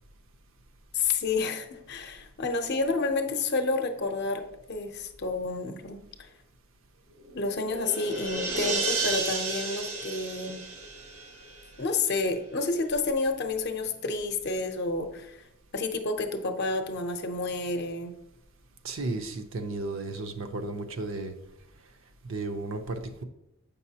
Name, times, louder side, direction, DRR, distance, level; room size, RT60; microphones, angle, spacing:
voice 1, 0.9-6.3 7.3-10.6 11.8-15.4 15.7-18.1, left 3 dB, 50° left, 6 dB, 0.7 m, -30 dB
sound 1, 7.2-11.8, right 3 dB, 80° right, 1.5 m, -32 dB
voice 2, 18.8-21.3 22.3-23.2, right 2 dB, 65° right, 6 dB, 0.6 m, -34 dB
7.4 x 5.4 x 2.8 m, 0.88 s
head